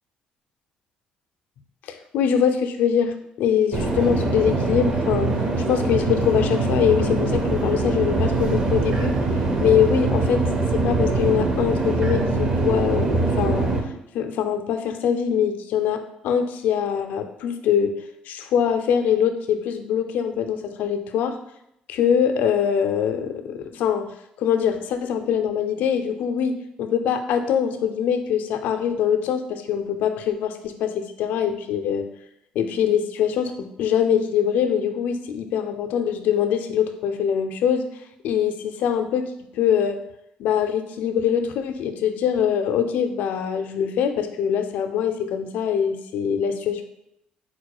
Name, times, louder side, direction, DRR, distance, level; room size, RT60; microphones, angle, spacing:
voice 1, 1.9-5.3 5.7-9.2 9.6-10.4 10.7-13.7 14.1-17.9 18.3-21.4 21.9-24.1 24.4-32.1 32.5-37.9 38.2-39.3 39.6-40.0 40.4-46.8, left 8 dB, 80° left, 7 dB, 0.4 m, -23 dB
sound 1, 3.7-13.8, right 3 dB, 35° right, 0.6 m, -23 dB
4.3 x 2.2 x 4.7 m, 0.79 s
cardioid pair, 130°, 3 cm